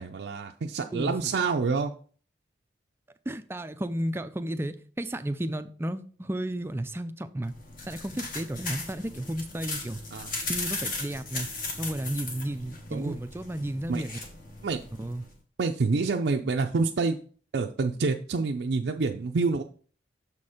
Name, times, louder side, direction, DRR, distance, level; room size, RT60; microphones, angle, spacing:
voice 1, 0.0-1.9 10.1-10.3 12.9-13.2 13.9-14.0 14.6-14.8 15.6-17.2 17.5-19.6, right 4 dB, 70° right, 0.5 m, -27 dB
voice 2, 0.9-1.3 3.3-7.5 7.9-10.0 10.5-11.5 11.8-14.2 15.0-15.3, right 1 dB, 15° right, 0.4 m, -33 dB
sound 1, 7.4-15.3, left 3 dB, 50° left, 1.6 m, -37 dB
6.8 x 4.3 x 4.9 m
head